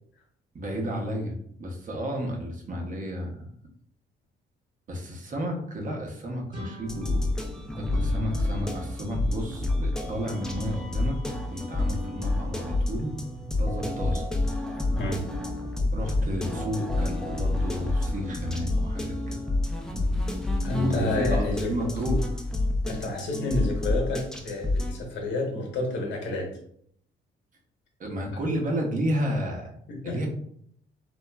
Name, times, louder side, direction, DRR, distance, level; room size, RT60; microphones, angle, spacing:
voice 1, 0.5-3.5 4.9-7.3 7.8-11.2 11.5-13.1 13.6-14.3 14.8-15.0 15.9-19.4 20.7-22.4 28.0-29.7 30.0-30.3, equal, 40° right, 1 dB, 0.7 m, -32 dB
sound 1, 6.5-9.3, equal, 25° right, 1.0 m, -46 dB
sound 2, 6.9-24.9, left 2 dB, 5° left, 0.4 m, -29 dB
voice 2, 20.6-21.7 22.8-26.5 29.9-30.2, left 2 dB, 65° left, 0 dB, 0.9 m, -29 dB
2.9 x 2.3 x 2.2 m, 0.66 s
cardioid pair, 90°, 20 cm